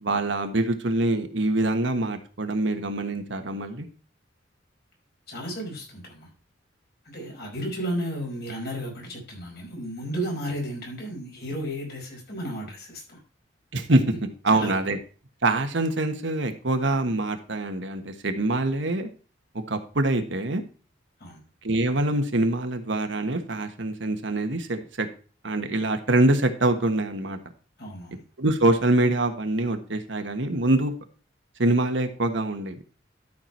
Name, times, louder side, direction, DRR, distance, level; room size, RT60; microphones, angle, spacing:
voice 1, 0.0-3.9 13.7-14.0 14.4-15.0 15.4-19.1 19.5-20.6 21.6-25.1 25.4-27.4 28.4-30.9 31.6-32.8, right 2 dB, 70° right, 7 dB, 1.4 m, -24 dB
voice 2, 5.3-6.3 7.1-13.2 14.5-14.8 21.2-21.4 27.8-28.2, equal, 55° left, 0 dB, 5.2 m, -33 dB
12.5 x 6.0 x 4.4 m, 0.38 s
head